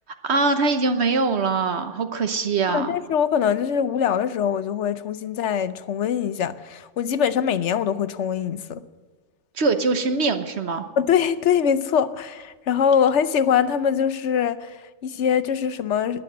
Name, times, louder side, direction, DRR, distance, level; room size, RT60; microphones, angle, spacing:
voice 1, 0.2-2.9 9.6-10.9, right 4 dB, 65° right, 1.3 m, -22 dB
voice 2, 2.7-8.8 11.0-16.2, left 8 dB, 80° left, 1.0 m, -23 dB
20.5 x 7.6 x 7.9 m
omnidirectional pair, 1.2 m